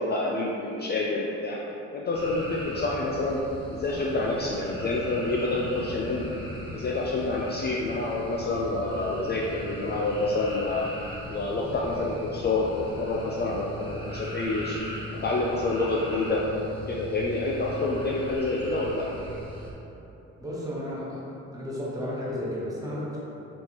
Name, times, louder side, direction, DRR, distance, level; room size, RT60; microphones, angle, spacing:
voice 1, 0.0-1.6 1.9-3.4 3.7-6.3 6.7-10.8 11.3-14.8 15.1-16.5 16.9-19.1, left 2 dB, 35° left, -3 dB, 0.4 m, -28 dB
sound 1, 2.1-19.7, equal, 15° left, 0.8 m, -39 dB
voice 2, 20.4-21.2 21.5-23.2, left 1 dB, 10° right, -7 dB, 1.1 m, -33 dB
4.2 x 3.2 x 3.0 m, 3.0 s
cardioid pair, 90°, 30 cm